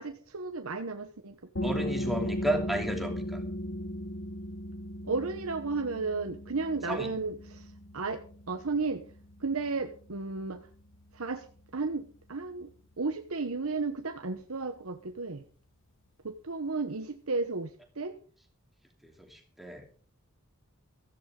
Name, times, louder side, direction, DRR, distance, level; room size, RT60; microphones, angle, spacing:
voice 1, 0.0-1.4 1.6-1.9 5.1-9.0 9.4-10.7 11.1-11.5 11.7-12.7 13.0-15.4 16.2-18.2, right 3 dB, 80° right, 6 dB, 1.1 m, -33 dB
sound 1, 1.6-12.9, equal, 60° left, 1.1 m, -38 dB
voice 2, 1.6-3.4 6.9-7.1 19.0-19.8, right 1 dB, ahead, 2 dB, 2.9 m, -33 dB
16.0 x 15.0 x 3.9 m, 0.42 s
head